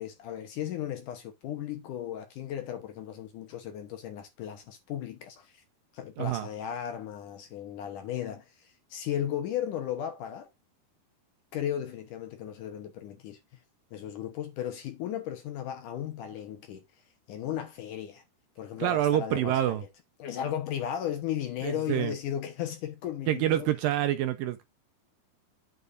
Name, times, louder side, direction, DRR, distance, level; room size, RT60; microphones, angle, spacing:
voice 1, 0.0-5.6 5.9-10.5 11.5-13.4 13.9-16.8 17.3-18.2 18.6-19.8 20.2-23.7, left 10 dB, 70° left, 2.2 m, -35 dB
voice 2, 18.8-19.8 21.6-22.1 23.3-24.7, right 12 dB, 75° right, 2.2 m, -27 dB
9.4 x 8.3 x 2.6 m
omnidirectional pair, 4.6 m